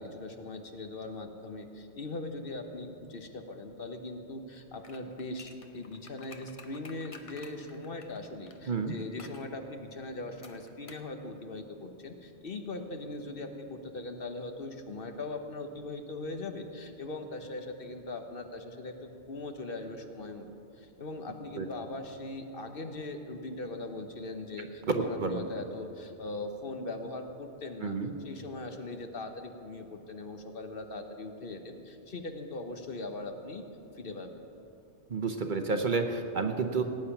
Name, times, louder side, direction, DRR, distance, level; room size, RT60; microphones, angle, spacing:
voice 1, 0.0-20.5 20.8-27.9 28.2-33.6 34.0-34.3, left 2 dB, 55° left, 5 dB, 1.1 m, -40 dB
sound 1, 4.8-8.6 9.2-9.5 10.4-11.1 11.4-11.5, left 3 dB, 35° left, 0.8 m, -52 dB
voice 2, 24.9-25.4 27.8-28.1 35.1-36.8, right 4 dB, 45° right, 5 dB, 0.9 m, -30 dB
17.5 x 8.6 x 5.8 m, 2.7 s
omnidirectional pair, 1.2 m